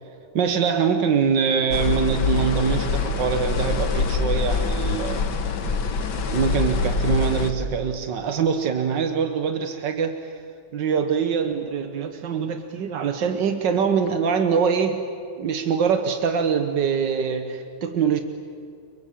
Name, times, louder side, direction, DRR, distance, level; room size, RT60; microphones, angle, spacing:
voice 1, 0.4-5.3 6.3-10.4 10.7-15.1 15.4-18.2, right 6 dB, 90° right, 7 dB, 1.9 m, -23 dB
sound 1, 1.7-7.5, left 4 dB, 75° left, 2.1 m, -24 dB
30.0 x 22.5 x 8.6 m, 2.3 s
omnidirectional pair, 1.9 m